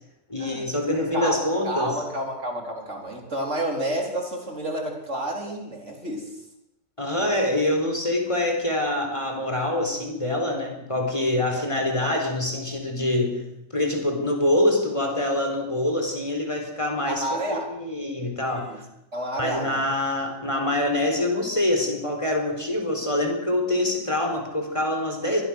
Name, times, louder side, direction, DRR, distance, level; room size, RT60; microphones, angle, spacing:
voice 1, 0.3-1.9 7.0-13.4 13.7-17.3 17.7-18.7 19.4-25.4, left 1 dB, 20° left, 3 dB, 4.4 m, -25 dB
voice 2, 0.9-6.3 11.8-11.9 17.1-17.7 18.5-18.8 19.1-19.8, right 1 dB, 60° right, 2 dB, 4.6 m, -30 dB
25.5 x 20.5 x 6.5 m, 0.86 s
omnidirectional pair, 1.4 m